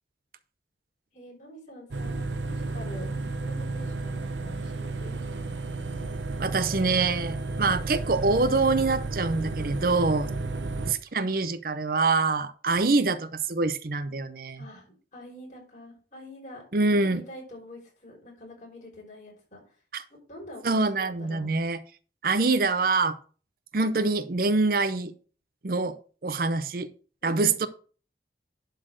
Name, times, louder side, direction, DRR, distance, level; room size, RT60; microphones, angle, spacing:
voice 1, 1.1-5.2 10.4-10.7 12.7-12.8 14.6-19.6 20.3-21.5 27.2-27.6, equal, 45° left, -2 dB, 5.5 m, -46 dB
sound 1, 1.9-10.9, right 3 dB, 85° right, 0.8 m, -32 dB
voice 2, 6.4-10.3 10.9-14.6 16.7-17.2 19.9-20.0 20.6-21.8 22.2-23.2 23.7-25.1 25.6-26.0 26.2-26.9 27.2-27.7, right 3 dB, 50° right, 12 dB, 0.7 m, -25 dB
11.0 x 4.2 x 6.5 m, 0.39 s
head